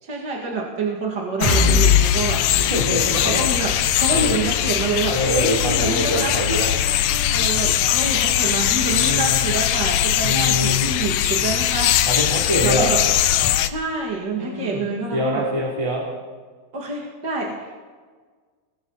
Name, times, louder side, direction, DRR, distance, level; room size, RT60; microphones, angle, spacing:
voice 1, 0.0-2.4 3.2-6.3 7.3-12.0 12.6-13.0 13.6-15.4 16.7-17.7, right 3 dB, 30° right, -2 dB, 2.3 m, -27 dB
sound 1, 1.4-13.7, left 11 dB, 90° left, 1.8 m, -21 dB
sound 2, 1.4-9.2 9.6-9.7 10.1-10.2, left 5 dB, 25° left, 1.0 m, -25 dB
voice 2, 2.7-3.4 4.1-4.5 5.1-6.7 7.5-7.8 9.0-9.4 10.2-11.0 12.0-12.9 14.4-14.8 15.1-16.1, equal, 10° right, -4 dB, 2.5 m, -24 dB
sound 3, 5.5-12.4, left 6 dB, 60° left, 2.5 m, -34 dB
28.5 x 22.0 x 4.2 m, 1.5 s
omnidirectional pair, 4.7 m